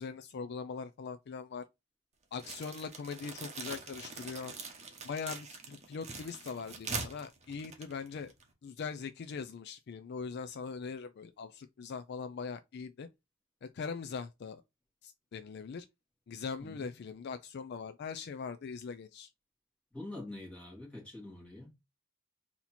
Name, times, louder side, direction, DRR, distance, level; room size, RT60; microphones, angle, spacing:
voice 1, 0.0-1.7 2.3-4.5 5.0-8.3 8.6-13.1 13.6-14.6 15.0-15.9 16.3-19.3, left 5 dB, 55° left, 0.4 m, -41 dB
sound 1, 2.4-8.5, right 4 dB, 30° right, 1.0 m, -43 dB
voice 2, 19.9-21.7, left 2 dB, 5° left, 2.0 m, -45 dB
4.1 x 2.9 x 4.1 m
head